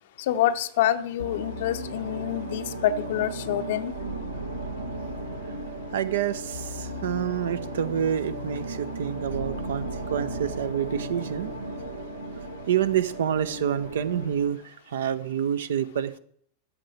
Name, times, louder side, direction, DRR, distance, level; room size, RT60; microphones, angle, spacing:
voice 1, 0.2-3.9, left 11 dB, 55° left, 9 dB, 0.6 m, -26 dB
sound 1, 1.2-14.5, right 1 dB, 85° right, 1.5 m, -35 dB
voice 2, 5.9-9.9 10.1-11.5 12.7-16.2, right 9 dB, 60° right, 16 dB, 0.7 m, -28 dB
13.5 x 4.7 x 7.6 m, 0.63 s
figure-of-eight pair, 90°, 0 cm